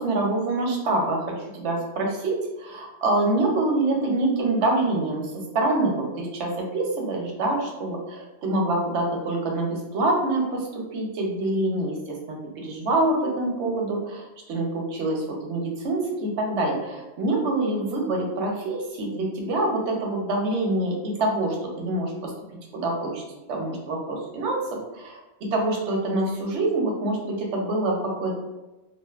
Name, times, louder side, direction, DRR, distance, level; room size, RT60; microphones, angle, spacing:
voice 1, 0.0-12.2 12.6-22.3 22.7-23.2 23.5-28.3, right 2 dB, 90° right, 0 dB, 1.0 m, -26 dB
2.5 x 2.4 x 2.3 m, 1.0 s
omnidirectional pair, 1.1 m